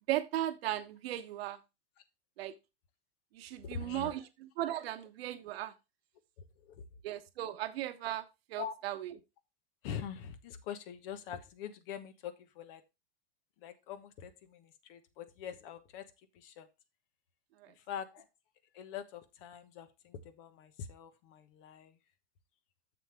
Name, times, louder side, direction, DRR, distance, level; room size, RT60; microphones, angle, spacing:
voice 1, 0.1-1.6 2.4-2.5 3.3-4.3 4.6-5.7 7.0-9.1 17.6-17.7, right 14 dB, 75° right, 10 dB, 1.1 m, -37 dB
voice 2, 3.6-4.3 6.4-6.8 8.6-8.7 9.8-12.8 13.6-16.7 17.7-18.3 18.7-22.0, left 8 dB, 65° left, 11 dB, 1.3 m, -44 dB
7.2 x 7.0 x 3.4 m, 0.25 s
hypercardioid pair, 110°, 30 cm